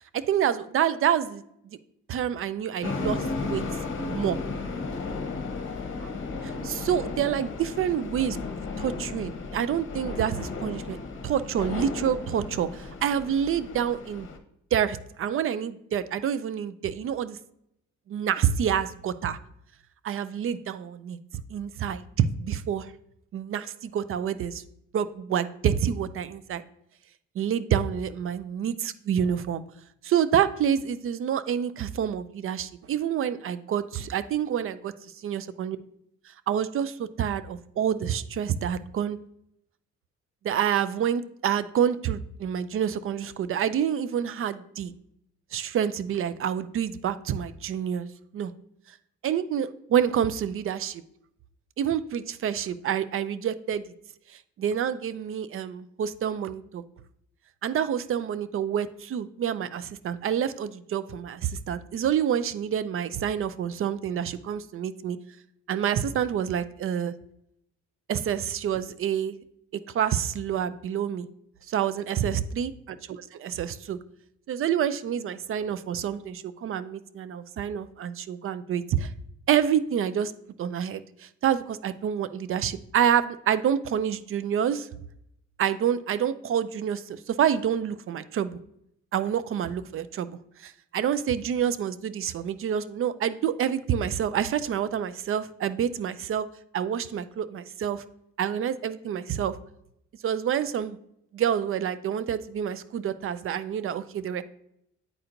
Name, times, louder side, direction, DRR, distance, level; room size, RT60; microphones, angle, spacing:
voice 1, 0.0-1.8 2.1-3.6 4.1-4.4 6.0-6.1 6.4-8.4 8.8-11.0 11.2-14.3 14.7-17.4 18.1-19.4 20.0-21.2 21.5-22.9 23.3-24.6 24.9-26.6 27.4-29.6 30.0-34.9 35.2-35.8 36.5-39.2 40.4-44.9 45.5-48.1 48.3-48.5 49.2-51.0 51.8-53.9 54.6-56.8 57.6-65.2 65.7-67.1 68.1-69.3 69.9-71.3 71.7-74.0 74.5-79.1 79.5-80.3 80.6-84.9 85.6-88.6 89.1-96.5 96.7-98.0 98.4-99.5 100.2-101.0 101.3-104.4, right 9 dB, 45° right, 14 dB, 0.4 m, -28 dB
sound 1, 2.8-14.4, left 3 dB, 40° left, 0.9 m, -34 dB
9.0 x 4.3 x 2.5 m, 0.75 s
cardioid pair, 90°, 30 cm